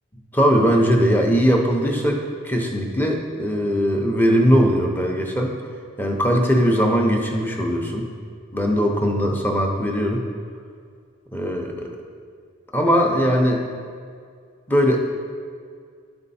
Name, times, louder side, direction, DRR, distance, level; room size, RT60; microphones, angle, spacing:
voice 1, 0.3-5.5 6.0-8.0 8.5-10.2 11.3-11.9 12.7-13.6 14.7-15.0, equal, 10° left, 1 dB, 0.7 m, -20 dB
11.5 x 4.4 x 4.2 m, 2.1 s
head